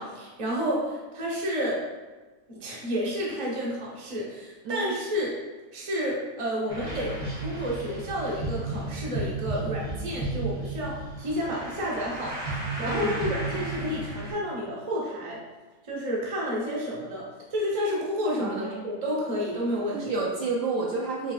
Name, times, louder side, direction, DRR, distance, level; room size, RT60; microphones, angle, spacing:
voice 1, 0.0-1.8 2.5-5.3 5.7-12.3 12.8-15.4 15.8-20.1, equal, 30° right, -4 dB, 0.6 m, -30 dB
sound 1, 6.7-14.3, right 2 dB, 90° right, 1.8 m, -33 dB
voice 2, 12.8-13.2 18.4-18.7 19.9-21.3, right 3 dB, 70° right, -3 dB, 0.9 m, -30 dB
6.1 x 2.5 x 2.3 m, 1.3 s
omnidirectional pair, 1.6 m